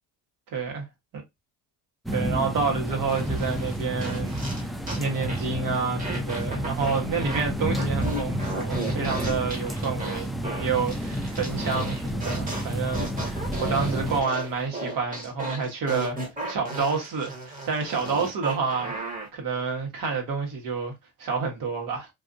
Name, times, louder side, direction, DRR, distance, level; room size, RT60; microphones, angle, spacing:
voice 1, 0.5-0.8 2.1-4.7 5.0-16.2 16.5-18.9 19.3-20.9 21.2-22.1, right 5 dB, 65° right, 1.3 m, -29 dB
sound 1, 2.1-14.2, equal, ahead, 0.4 m, -30 dB
sound 2, 3.1-5.0 5.3-5.5 6.0-7.4 7.7-19.3, right 2 dB, 25° right, 1.2 m, -35 dB
2.7 x 2.4 x 2.5 m
supercardioid pair, 90°, 36 cm